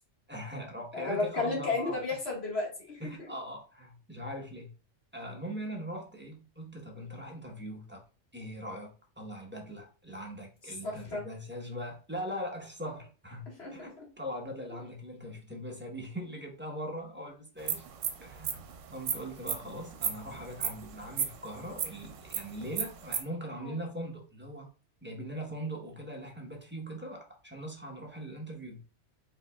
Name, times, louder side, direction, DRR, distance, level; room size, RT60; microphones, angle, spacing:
voice 1, 0.3-1.9 3.0-4.7 5.1-8.0 8.3-17.9 18.2-18.6 18.9-24.7 25.0-28.8, equal, 10° right, 0 dB, 0.8 m, -41 dB
voice 2, 0.9-3.3 10.8-11.2 13.6-14.1 23.6-23.8, left 3 dB, 55° left, -2 dB, 1.9 m, -33 dB
sound 1, 17.6-23.2, right 8 dB, 75° right, 1.0 m, -34 dB
4.9 x 4.0 x 2.3 m, 0.35 s
omnidirectional pair, 1.3 m